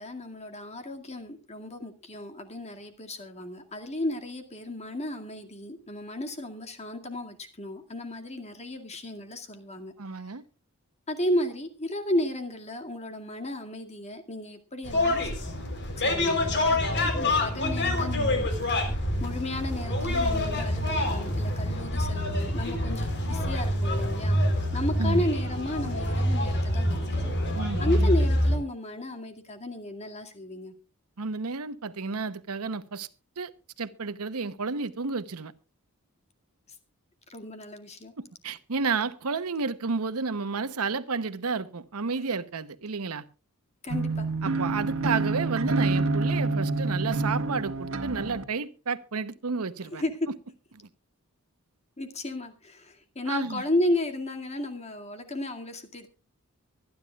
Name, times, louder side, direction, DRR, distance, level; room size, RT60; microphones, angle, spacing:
voice 1, 0.0-9.9 11.1-15.3 16.0-24.4 24.7-27.3 27.8-30.7 37.3-38.1 43.8-44.3 49.9-50.3 52.0-56.1, left 1 dB, 30° left, 2.2 m, -33 dB
voice 2, 10.0-10.4 25.0-25.2 27.5-28.1 31.2-33.1 33.4-33.5 33.8-35.5 38.4-43.2 44.4-50.0 53.3-53.6, right 4 dB, 85° right, 0.8 m, -31 dB
sound 1, 14.8-28.6, left 1 dB, 55° left, 3.7 m, -26 dB
sound 2, 43.9-48.4, right 3 dB, 65° right, 1.6 m, -27 dB
24.0 x 10.5 x 2.4 m
head